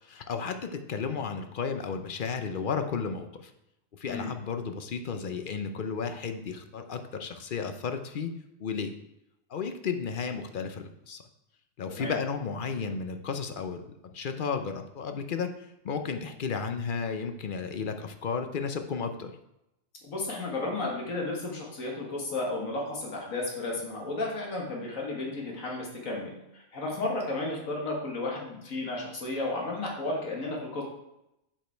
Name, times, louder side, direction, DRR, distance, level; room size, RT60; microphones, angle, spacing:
voice 1, 0.0-3.5 4.0-8.3 8.6-8.9 9.5-11.2 11.8-15.5 15.8-19.3, left 5 dB, 50° left, 7 dB, 0.7 m, -33 dB
voice 2, 20.0-30.8, left 2 dB, 85° left, -1 dB, 2.0 m, -33 dB
7.4 x 5.2 x 4.5 m, 0.85 s
omnidirectional pair, 1.4 m